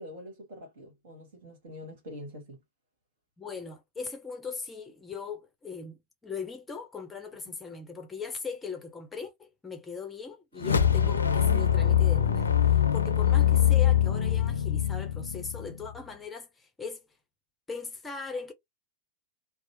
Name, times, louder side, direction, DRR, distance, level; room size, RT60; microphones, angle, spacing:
voice 1, 0.0-2.6, left 1 dB, 55° right, 1.5 m, -45 dB
voice 2, 3.4-17.0 17.7-18.5, left 5 dB, 10° left, 0.7 m, -39 dB
sound 1, 10.6-16.0, left 10 dB, 75° left, 0.5 m, -23 dB
2.8 x 2.0 x 2.9 m
figure-of-eight pair, 90°, 0 cm